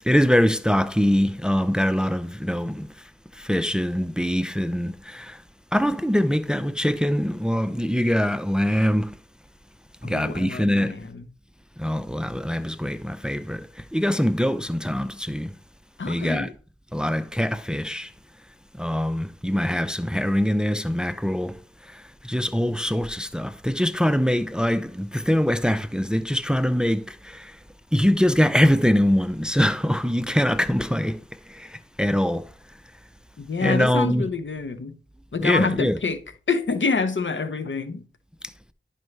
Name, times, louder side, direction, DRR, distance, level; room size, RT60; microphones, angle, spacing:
voice 1, 0.1-2.9 3.4-5.4 5.7-9.1 10.0-11.0 11.8-13.7 13.9-15.5 16.1-16.5 16.9-18.1 18.8-21.5 22.2-27.5 27.9-31.2 31.6-31.7 32.0-32.5 33.6-34.3 35.4-36.0, equal, 5° right, 0.5 m, -23 dB
voice 2, 10.0-11.3 16.0-16.5 33.4-35.0 35.3-36.2 36.5-38.0, left 4 dB, 70° left, 0.8 m, -27 dB
10.5 x 5.4 x 3.2 m
wide cardioid pair, 50°, 20 cm